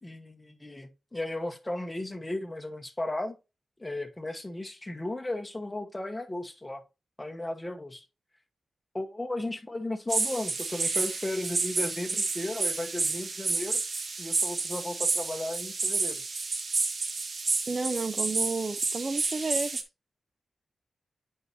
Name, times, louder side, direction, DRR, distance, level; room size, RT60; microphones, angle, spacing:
voice 1, 0.0-3.4 3.8-6.8 7.2-8.0 8.9-13.8 14.2-16.2, left 1 dB, 15° left, 1.2 m, -35 dB
sound 1, 10.1-19.8, right 4 dB, 55° right, 1.2 m, -30 dB
voice 2, 17.7-19.8, right 3 dB, 40° right, 0.5 m, -31 dB
8.9 x 5.5 x 2.7 m
wide cardioid pair, 95°, 0 cm